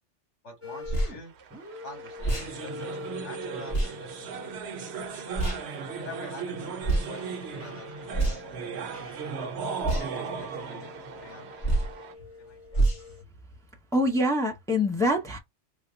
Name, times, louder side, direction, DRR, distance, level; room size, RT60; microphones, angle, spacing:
voice 1, 0.4-1.3 1.8-5.0 5.9-9.6 10.0-12.9, left 2 dB, 70° left, 2.0 m, -47 dB
sound 1, 0.6-1.2 1.5-13.2, left 4 dB, 15° right, 0.8 m, -46 dB
sound 2, 0.9-1.1 2.2-2.5 3.7-3.9 5.4-5.6 6.8-7.1 8.1-8.6 9.8-10.1 11.6-11.9 12.7-13.0, right 2 dB, 55° left, 1.6 m, -25 dB
sound 3, 1.4-12.1, right 5 dB, 70° right, 0.9 m, -37 dB
voice 2, 13.9-15.4, left 1 dB, 5° left, 0.4 m, -25 dB
3.4 x 2.2 x 3.8 m
omnidirectional pair, 1.2 m